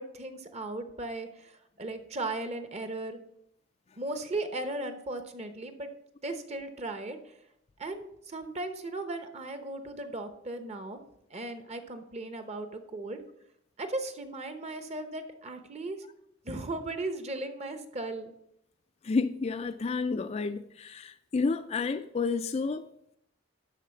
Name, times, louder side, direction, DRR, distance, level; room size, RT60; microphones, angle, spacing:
voice 1, 0.0-1.5 1.8-3.2 4.0-5.9 6.2-7.2 7.8-11.0 11.3-13.2 13.8-16.0 16.4-18.3, right 2 dB, 35° right, 0.9 m, -37 dB
voice 2, 19.0-22.9, left 4 dB, 35° left, 0.4 m, -30 dB
11.5 x 4.1 x 6.9 m
head